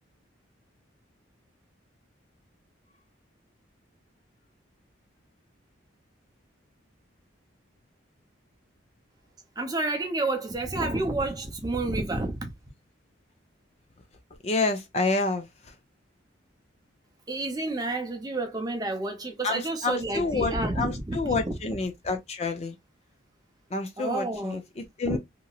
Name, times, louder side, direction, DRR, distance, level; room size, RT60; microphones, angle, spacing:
voice 1, 9.6-12.5 17.3-21.5 24.0-24.6 25.1-25.2, right 2 dB, 20° right, 0.6 m, -30 dB
voice 2, 14.4-15.7 19.4-22.8 23.7-25.2, left 3 dB, 30° left, 0.4 m, -29 dB
2.9 x 2.6 x 2.3 m
head